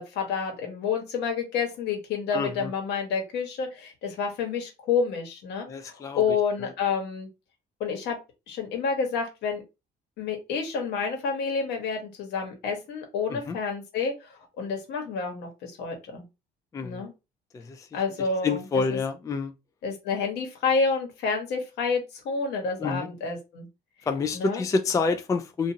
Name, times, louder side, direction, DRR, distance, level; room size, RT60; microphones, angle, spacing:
voice 1, 0.0-7.3 7.8-8.2 8.5-9.6 10.2-16.2 16.8-17.1 17.9-18.6 18.9-19.0 19.8-23.7 24.3-24.6, left 5 dB, 80° left, 1.2 m, -29 dB
voice 2, 2.3-2.7 5.6-6.7 13.3-13.6 16.7-17.0 17.5-17.9 18.2-19.5 22.8-23.1 24.1-25.7, left 4 dB, 20° left, 0.3 m, -28 dB
2.7 x 2.5 x 2.7 m
cardioid pair, 110°, 17 cm